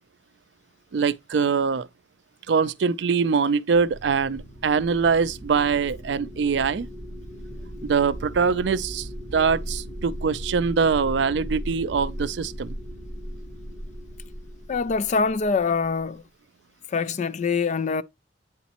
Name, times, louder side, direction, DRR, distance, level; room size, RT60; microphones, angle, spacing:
voice 1, 0.9-1.9 2.5-6.9 7.8-12.8, right 5 dB, 65° right, 0.4 m, -23 dB
sound 1, 3.7-16.0, equal, 75° left, 1.9 m, -37 dB
voice 2, 14.7-16.2 16.9-18.0, left 4 dB, 40° left, 0.3 m, -24 dB
9.1 x 4.1 x 2.9 m
head